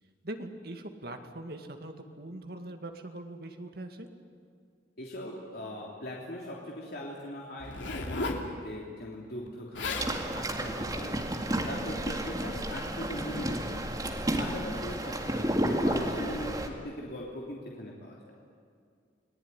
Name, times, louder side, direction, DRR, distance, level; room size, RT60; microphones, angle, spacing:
voice 1, 0.2-4.1 15.4-15.6, right 1 dB, 55° right, 5 dB, 2.2 m, -42 dB
voice 2, 5.0-11.3 11.6-13.9 14.4-18.3, left 1 dB, 55° left, -3 dB, 3.2 m, -41 dB
Zipper (clothing), 7.6-8.5 9.5-9.6 9.7-10.1 10.8-11.1, left 2 dB, 80° left, 2.9 m, -34 dB
sound 1, 10.0-16.7, right 1 dB, 20° right, 2.2 m, -31 dB
29.5 x 19.5 x 9.9 m, 2.2 s
head